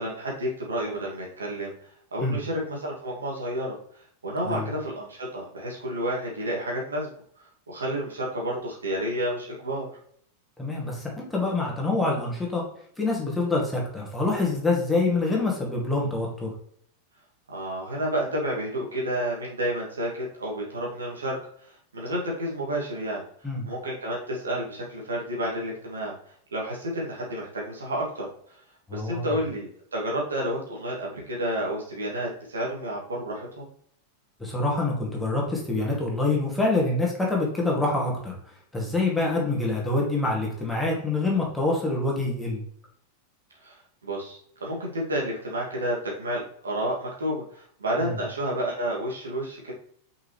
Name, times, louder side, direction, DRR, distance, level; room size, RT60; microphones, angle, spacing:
voice 1, 0.0-1.7 2.1-7.1 7.7-9.9 17.5-21.3 21.6-23.2 23.7-26.1 26.5-28.3 28.9-33.7 43.6-43.8 44.0-49.7, right 1 dB, 70° right, -3 dB, 2.3 m, -30 dB
voice 2, 10.6-12.6 13.0-16.5 23.4-23.7 28.9-29.3 34.4-38.4 38.7-42.6 48.0-48.1, left 2 dB, 5° left, -3 dB, 2.3 m, -26 dB
6.3 x 5.3 x 3.2 m, 0.62 s
figure-of-eight pair, 90°, 0 cm